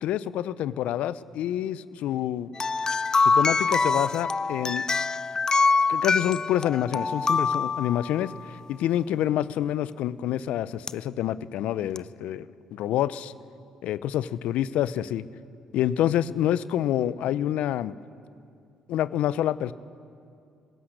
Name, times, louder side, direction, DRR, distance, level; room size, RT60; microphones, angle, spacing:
voice 1, 0.0-2.5 3.2-4.9 5.9-8.3 8.7-12.5 12.7-13.3 13.8-15.2 15.7-17.9 18.9-19.7, left 11 dB, 75° left, 16 dB, 0.7 m, -27 dB
sound 1, 2.6-8.5 10.9-11.0 12.0-12.1, left 4 dB, 30° left, 0.5 m, -25 dB
30.0 x 17.0 x 6.6 m, 2.4 s
supercardioid pair, 60°, 2 cm